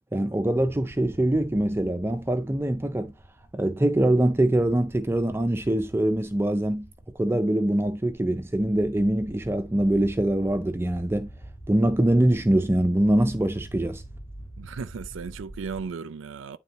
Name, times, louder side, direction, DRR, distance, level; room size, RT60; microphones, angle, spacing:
voice 1, 0.1-3.1 3.5-6.9 7.2-11.3 11.7-14.0, right 1 dB, 10° right, 0.4 m, -23 dB
sound 1, 0.5-15.9, right 1 dB, 30° left, 4.5 m, -46 dB
voice 2, 14.6-16.6, right 5 dB, 85° right, 0.4 m, -35 dB
9.6 x 3.7 x 4.1 m
head